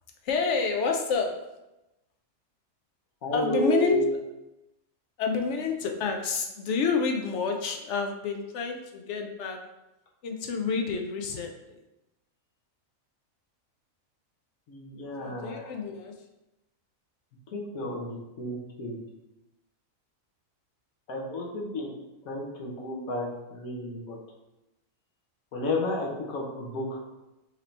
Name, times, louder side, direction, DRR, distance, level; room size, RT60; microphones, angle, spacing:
voice 1, 0.2-1.3 3.3-4.2 5.2-9.6 10.2-11.8 15.2-16.1, left 4 dB, 65° left, 3 dB, 0.8 m, -28 dB
voice 2, 3.2-4.2 14.7-15.7 17.5-19.0 21.1-21.9 22.2-24.2 25.5-27.0, left 1 dB, 85° left, -3 dB, 1.4 m, -32 dB
4.9 x 2.8 x 3.3 m, 0.96 s
omnidirectional pair, 1.4 m